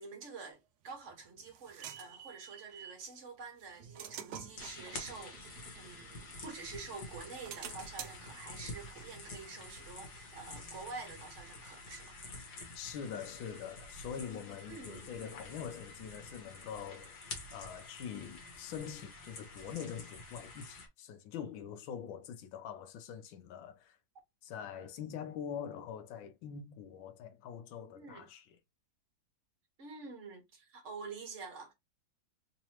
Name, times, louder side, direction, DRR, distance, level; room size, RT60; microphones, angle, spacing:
voice 1, 0.0-5.5 5.8-12.2 14.7-15.1 27.9-28.3 29.8-31.7, right 4 dB, 40° right, 1.5 m, -47 dB
sound 1, 0.9-3.1 3.6-6.7 7.1-10.6, right 9 dB, 70° right, 1.0 m, -50 dB
sound 2, 4.6-20.9, left 2 dB, 60° left, 1.7 m, -49 dB
voice 2, 12.7-24.0 24.4-28.5, left 8 dB, 80° left, 1.4 m, -44 dB
3.8 x 2.9 x 2.9 m
omnidirectional pair, 2.1 m